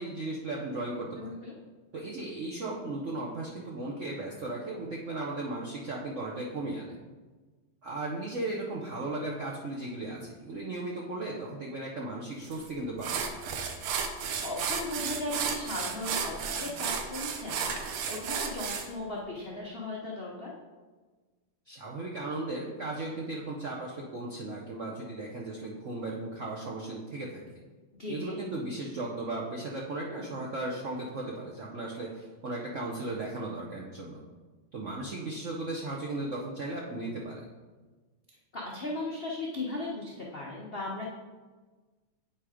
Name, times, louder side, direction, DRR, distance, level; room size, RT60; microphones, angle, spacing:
voice 1, 0.0-1.4 1.9-7.0 7.8-13.4 21.7-27.4 28.1-34.2 34.7-37.5, right 2 dB, 70° right, -3 dB, 0.7 m, -36 dB
voice 2, 1.2-1.5 14.4-20.5 27.9-28.4 38.5-41.0, left 2 dB, 65° left, -4 dB, 0.5 m, -37 dB
sound 1, 12.5-12.6 13.0-18.9, right 6 dB, 90° right, 1.6 m, -33 dB
8.5 x 3.6 x 4.9 m, 1.3 s
omnidirectional pair, 2.4 m